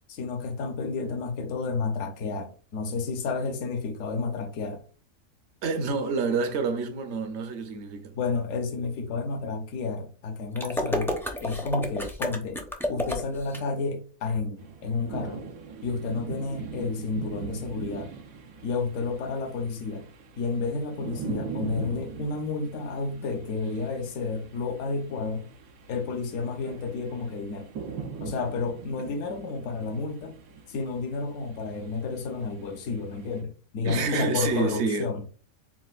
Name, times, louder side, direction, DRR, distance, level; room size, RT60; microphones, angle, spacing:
voice 1, 0.1-4.8 8.1-11.1 11.4-12.6 12.9-15.4 15.8-18.1 18.6-20.1 20.4-25.5 25.9-27.7 28.2-30.4 30.7-35.2, left 4 dB, 75° left, 1.1 m, -31 dB
voice 2, 5.6-8.1 33.8-35.1, right 4 dB, 60° right, 1.0 m, -28 dB
sound 1, 10.6-13.6, left 1 dB, 5° left, 0.4 m, -30 dB
sound 2, 14.6-33.4, right 5 dB, 85° right, 1.2 m, -41 dB
7.3 x 2.4 x 2.4 m
omnidirectional pair, 1.4 m